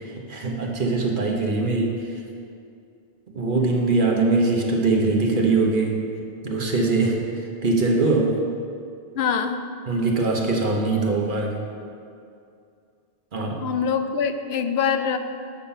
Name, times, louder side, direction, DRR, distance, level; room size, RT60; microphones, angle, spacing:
voice 1, 0.0-2.0 3.3-6.0 6.4-7.2 7.6-8.4 9.9-11.6 13.3-13.6, right 3 dB, 55° right, 0 dB, 1.2 m, -22 dB
voice 2, 9.2-9.6 13.6-15.2, left 7 dB, 85° left, 8 dB, 0.8 m, -24 dB
8.5 x 5.7 x 5.6 m, 2.4 s
omnidirectional pair, 1.0 m